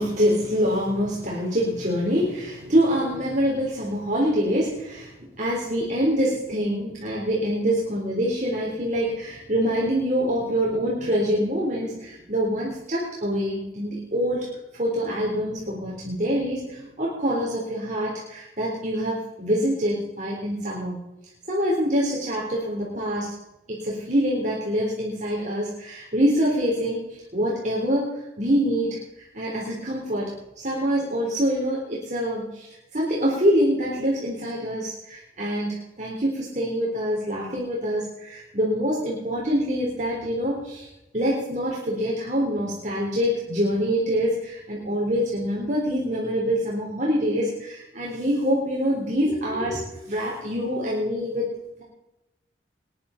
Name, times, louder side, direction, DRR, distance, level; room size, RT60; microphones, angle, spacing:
voice 1, 0.0-14.5 14.8-21.0 21.5-23.3 23.7-27.1 27.3-29.0 29.3-30.3 30.6-40.9 41.1-51.5, equal, 40° right, -4 dB, 3.8 m, -25 dB
22.0 x 11.0 x 4.3 m, 0.93 s
head